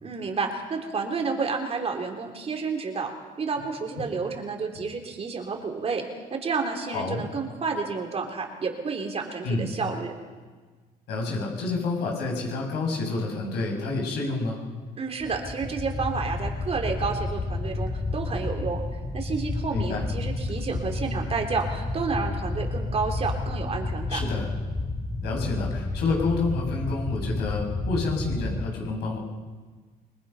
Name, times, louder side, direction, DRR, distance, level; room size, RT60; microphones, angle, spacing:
voice 1, 0.0-6.0 6.3-10.1 15.0-18.8 19.1-24.2, right 4 dB, 35° right, 3 dB, 3.6 m, -30 dB
voice 2, 6.9-7.2 9.4-9.7 11.1-14.6 19.7-20.0 24.1-24.5 25.2-29.2, left 3 dB, 75° left, -1 dB, 7.1 m, -28 dB
sound 1, 15.2-28.6, left 2 dB, 20° left, 2.5 m, -31 dB
26.5 x 21.0 x 5.6 m, 1.4 s
cardioid pair, 110°, 17 cm